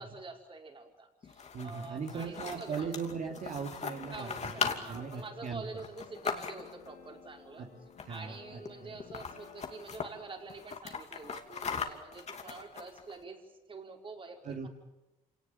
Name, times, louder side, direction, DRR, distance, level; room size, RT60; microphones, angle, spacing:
voice 1, 0.0-2.9 4.1-7.7 8.1-14.7, right 3 dB, 35° right, 2 dB, 5.2 m, -47 dB
sound 1, 1.2-6.9 7.9-8.4 8.6-8.7 9.0-10.1 10.5-13.1, left 6 dB, 50° left, 2.8 m, -39 dB
voice 2, 1.5-4.5 4.9-5.6 7.6-7.7 8.1-9.0 14.4-14.7, right 5 dB, 60° right, 0 dB, 2.9 m, -39 dB
sound 2, 1.9-10.7, left 7 dB, 75° left, 2.7 m, -56 dB
27.5 x 18.5 x 9.2 m, 0.99 s
cardioid pair, 85°, 15 cm